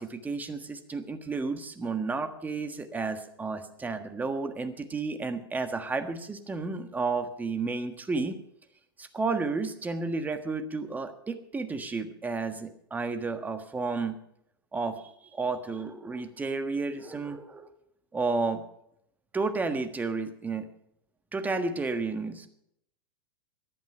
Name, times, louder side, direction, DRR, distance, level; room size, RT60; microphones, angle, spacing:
voice 1, 0.0-8.4 9.0-14.2 14.7-17.7 18.1-18.6 19.3-20.7 21.3-22.5, right 4 dB, 10° right, 8 dB, 1.4 m, -32 dB
15.0 x 11.0 x 5.7 m, 0.74 s
figure-of-eight pair, 100°, 13 cm